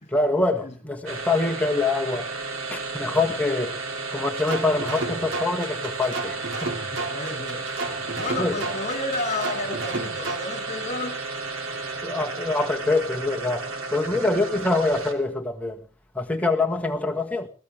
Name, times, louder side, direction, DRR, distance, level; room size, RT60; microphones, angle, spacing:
voice 1, 0.1-2.3 2.7-3.8 4.1-6.7 8.4-8.6 12.0-13.6 13.9-15.8 16.1-17.5, left 2 dB, 5° left, 1.6 m, -25 dB
sound 1, 1.1-15.4, right 3 dB, 80° right, 2.9 m, -33 dB
sound 2, 4.4-10.4, right 3 dB, 60° right, 3.7 m, -32 dB
voice 2, 6.8-7.6 8.1-11.2 14.1-14.2, left 2 dB, 30° left, 3.0 m, -32 dB
22.5 x 17.0 x 3.5 m
head